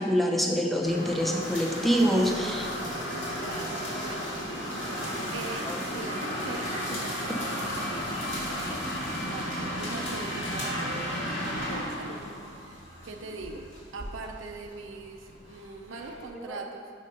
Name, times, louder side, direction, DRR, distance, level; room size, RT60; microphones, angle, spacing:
voice 1, 0.0-2.7 5.7-5.8 16.5-16.6, equal, ahead, 1 dB, 0.5 m, -25 dB
sound 1, 0.8-16.3, equal, 70° left, 1.8 m, -34 dB
voice 2, 3.4-4.6 5.3-12.2 12.5-16.9, right 3 dB, 80° right, 3 dB, 0.5 m, -42 dB
5.4 x 5.0 x 5.2 m, 2.1 s
head